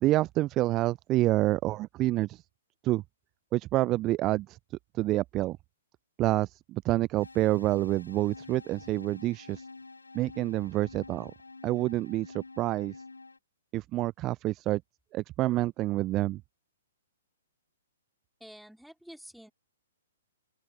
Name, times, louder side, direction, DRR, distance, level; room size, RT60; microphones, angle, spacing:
voice 1, 0.0-2.4 2.8-3.0 3.5-4.6 5.0-5.6 6.2-9.6 10.1-11.3 11.6-12.9 13.7-14.8 15.1-16.4, right 16 dB, 30° right, 0.4 m, -28 dB
sound 1, 7.2-13.4, left 3 dB, 80° left, 5.5 m, -48 dB
voice 2, 18.4-19.5, equal, ahead, 3.4 m, -49 dB
open air
figure-of-eight pair, 115°, 0 cm